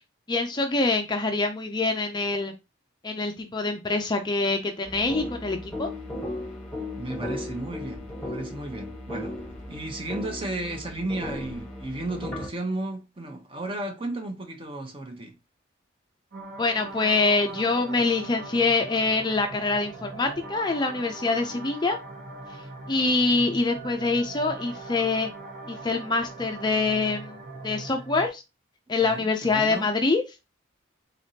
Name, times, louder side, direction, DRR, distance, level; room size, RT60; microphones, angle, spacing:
voice 1, 0.3-2.5 3.0-5.9 16.6-22.0 22.9-25.3 25.7-27.4 27.6-28.4 28.9-30.2, left 3 dB, 20° left, 0.4 m, -25 dB
sound 1, 4.9-12.5, left 1 dB, 5° left, 1.2 m, -36 dB
voice 2, 7.0-9.4 9.7-15.3 29.0-29.9, right 2 dB, 25° right, 0.8 m, -34 dB
sound 2, 16.3-28.3, right 2 dB, 50° right, 1.2 m, -41 dB
3.9 x 3.4 x 2.8 m
head